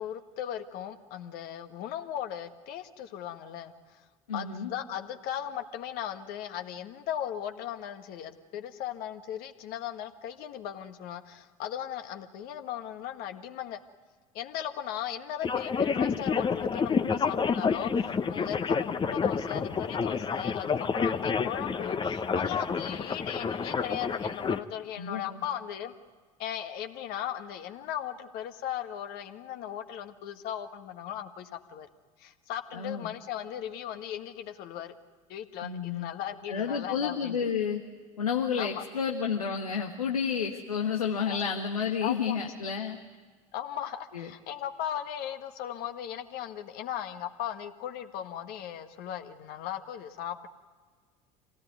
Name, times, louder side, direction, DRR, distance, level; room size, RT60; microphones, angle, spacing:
voice 1, 0.0-4.0 4.3-13.8 14.3-25.9 26.4-31.9 32.2-34.9 35.3-37.4 38.6-38.8 40.5-40.6 41.3-41.4 42.0-42.4 43.5-50.5, left 10 dB, 60° left, 7 dB, 1.7 m, -37 dB
voice 2, 4.3-4.7 25.0-25.4 32.7-33.1 35.6-36.1 36.5-37.8 38.2-43.0 44.1-44.3, left 6 dB, 90° left, 2 dB, 1.5 m, -30 dB
sound 1, 15.4-24.6, left 5 dB, 25° left, 1.1 m, -29 dB
26.5 x 18.0 x 9.5 m, 1.5 s
hypercardioid pair, 70°, 18 cm